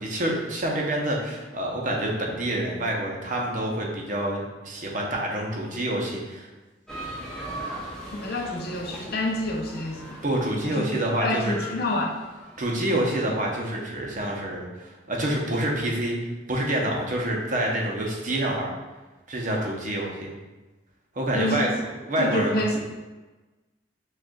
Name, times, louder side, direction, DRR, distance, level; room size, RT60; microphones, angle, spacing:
voice 1, 0.0-6.5 10.2-11.5 12.6-16.2 16.5-18.7 19.3-20.3 21.2-22.8, right 1 dB, 45° right, -1 dB, 0.6 m, -27 dB
sound 1, 6.9-12.9, right 1 dB, 5° left, 0.6 m, -40 dB
voice 2, 8.1-10.2 10.6-10.9 11.2-12.2 21.3-21.7 22.2-22.8, left 1 dB, 55° left, 1 dB, 0.5 m, -27 dB
6.1 x 2.4 x 2.3 m, 1.2 s
head